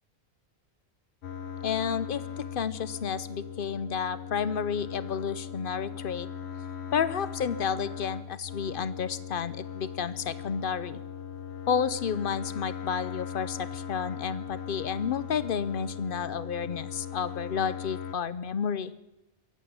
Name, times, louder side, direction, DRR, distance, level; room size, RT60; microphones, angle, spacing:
sound 1, 1.2-18.2, left 8 dB, 80° left, 1.2 m, -39 dB
voice 1, 1.6-6.3 6.9-11.0 11.7-18.9, left 7 dB, 60° left, 15 dB, 0.9 m, -31 dB
23.5 x 8.3 x 7.1 m, 0.99 s
omnidirectional pair, 1.1 m